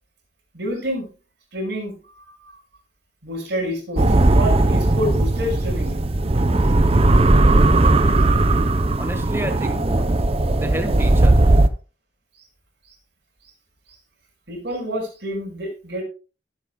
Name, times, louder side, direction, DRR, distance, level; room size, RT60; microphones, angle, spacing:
voice 1, 0.5-1.1 1.5-2.6 3.2-6.0 14.5-16.0, equal, 60° right, 1 dB, 6.1 m, -28 dB
sound 1, 4.0-11.7, right 2 dB, 30° right, 0.6 m, -17 dB
voice 2, 9.0-10.1 10.5-11.5, right 1 dB, 10° right, 5 dB, 1.5 m, -30 dB
16.5 x 8.5 x 2.3 m, 0.34 s
head